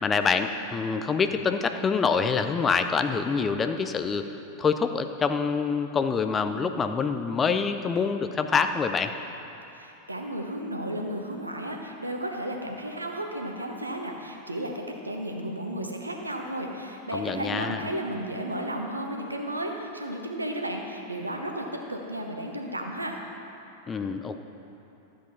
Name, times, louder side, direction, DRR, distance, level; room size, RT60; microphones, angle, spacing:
voice 1, 0.0-4.2 4.6-9.1 17.1-17.8 23.9-24.4, left 5 dB, 20° left, 8 dB, 0.5 m, -26 dB
voice 2, 9.7-23.2, right 1 dB, 85° right, 2 dB, 1.0 m, -33 dB
13.0 x 7.7 x 4.2 m, 2.9 s
figure-of-eight pair, 90°, 0 cm